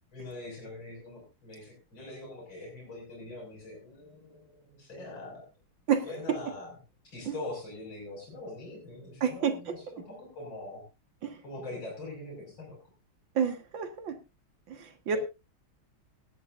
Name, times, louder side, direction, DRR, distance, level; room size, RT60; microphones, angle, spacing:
voice 1, 0.1-5.5 6.0-6.7 7.0-10.8 11.4-12.8 15.1-15.2, left 2 dB, 60° left, -1 dB, 6.4 m, -43 dB
voice 2, 9.2-9.5 11.2-11.4 13.4-14.1 14.7-15.2, right 7 dB, 65° right, 7 dB, 2.3 m, -29 dB
17.5 x 12.0 x 2.6 m, 0.27 s
omnidirectional pair, 2.3 m